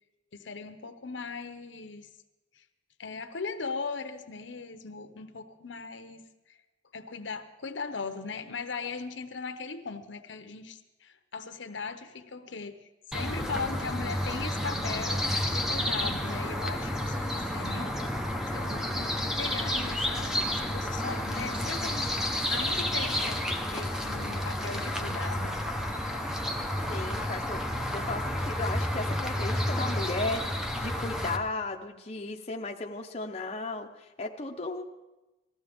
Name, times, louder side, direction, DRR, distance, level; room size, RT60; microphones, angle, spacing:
voice 1, 0.3-2.1 2.6-2.7 3.0-6.2 6.9-12.8 13.1-15.2 15.5-18.0 18.5-23.5 23.7-25.6, left 4 dB, 70° left, 7 dB, 0.9 m, -38 dB
sound 1, 13.1-31.4, left 1 dB, 5° right, 0.9 m, -31 dB
voice 2, 26.9-27.6 27.9-34.8, left 3 dB, 35° left, 1 dB, 0.8 m, -35 dB
19.0 x 14.5 x 3.6 m, 1.1 s
head